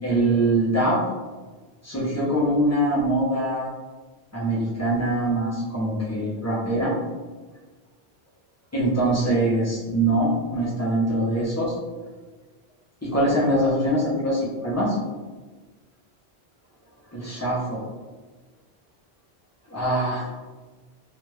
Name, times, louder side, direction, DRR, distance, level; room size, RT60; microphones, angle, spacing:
voice 1, 0.0-1.0 1.8-3.7 4.3-6.9 8.7-11.8 13.0-15.0 17.1-17.9 19.7-20.3, right 1 dB, 15° left, -5 dB, 0.7 m, -23 dB
3.3 x 2.5 x 3.0 m, 1.3 s
omnidirectional pair, 1.1 m